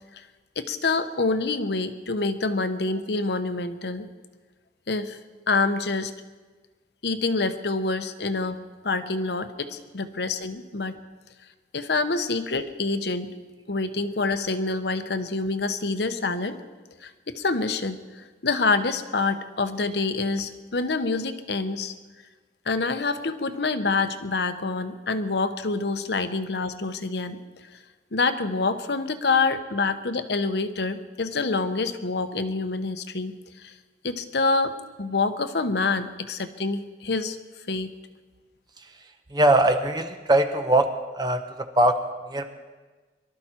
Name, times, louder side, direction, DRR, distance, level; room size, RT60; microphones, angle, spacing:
voice 1, 0.6-4.1 4.9-5.2 5.5-6.1 7.0-10.9 11.7-13.3 13.7-16.6 17.0-21.9 22.7-27.4 28.1-33.7 34.0-37.4 37.7-37.9, left 3 dB, 75° left, 10 dB, 0.9 m, -26 dB
voice 2, 39.3-40.9 41.2-42.0 42.3-42.5, right 1 dB, 25° right, 7 dB, 0.7 m, -21 dB
23.0 x 13.0 x 4.4 m, 1.3 s
head